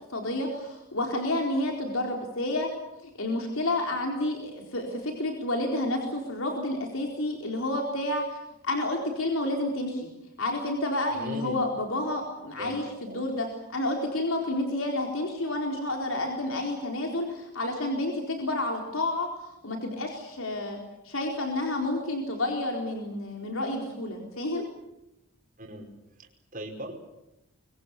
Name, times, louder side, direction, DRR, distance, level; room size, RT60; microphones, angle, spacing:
voice 1, 0.1-2.7 3.0-8.4 8.6-10.1 10.4-19.3 19.6-20.8 21.0-24.7, left 1 dB, 65° left, 2 dB, 4.3 m, -30 dB
voice 2, 11.1-11.7 12.6-13.2 25.6-25.9 26.2-27.0, right 1 dB, 40° right, 2 dB, 5.1 m, -39 dB
24.5 x 24.0 x 8.5 m, 0.87 s
head